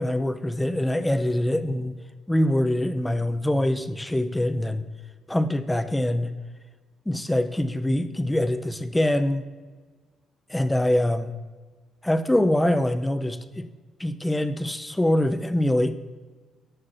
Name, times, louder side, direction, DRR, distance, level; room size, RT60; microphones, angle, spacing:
voice 1, 0.0-2.0 2.3-4.8 5.3-6.3 7.1-9.4 10.5-11.3 12.0-13.7 14.0-15.9, left 1 dB, 10° left, 10 dB, 0.5 m, -24 dB
13.0 x 6.4 x 2.5 m, 1.4 s
cardioid pair, 120°, 0 cm